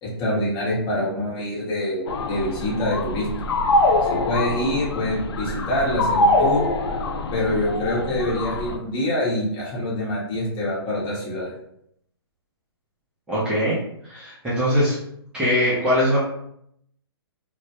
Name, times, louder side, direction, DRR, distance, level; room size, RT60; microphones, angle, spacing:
voice 1, 0.0-3.3 4.1-6.6 7.3-11.5, left 1 dB, 25° left, -6 dB, 0.9 m, -25 dB
sound 1, 2.1-8.8, left 2 dB, 75° left, 0.4 m, -24 dB
voice 2, 13.3-15.0 15.3-16.2, equal, 5° right, -9 dB, 0.5 m, -22 dB
2.1 x 2.1 x 2.8 m, 0.72 s
hypercardioid pair, 140°, 14 cm